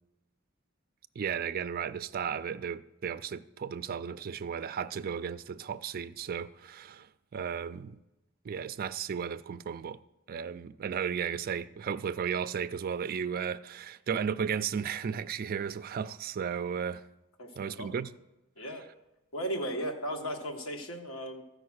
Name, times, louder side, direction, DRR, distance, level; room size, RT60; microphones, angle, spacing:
voice 1, 1.2-8.0 8.4-10.0 10.3-17.0 17.6-18.1, right 7 dB, 45° right, 0.3 m, -34 dB
voice 2, 17.4-17.9 18.6-18.8 19.3-21.4, equal, 80° left, 1.5 m, -36 dB
13.5 x 5.1 x 6.3 m
head